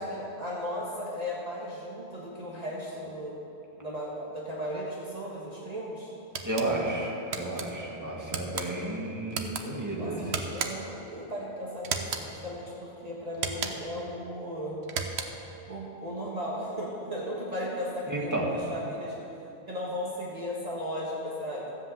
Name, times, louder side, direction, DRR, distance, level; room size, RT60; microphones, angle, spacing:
voice 1, 0.0-3.4 3.8-6.1 10.0-14.8 15.7-19.1 19.7-21.7, equal, 35° right, -5 dB, 1.6 m, -36 dB
sound 1, 6.3-6.7 7.3-7.7 8.3-8.7 9.3-9.6 10.3-10.9 11.8-12.3 13.3-13.9 14.8-15.5, right 5 dB, 75° right, 1.1 m, -34 dB
voice 2, 6.4-10.3 18.1-18.5, right 1 dB, 15° right, -3 dB, 1.9 m, -32 dB
13.5 x 7.7 x 7.7 m, 3.0 s
omnidirectional pair, 1.1 m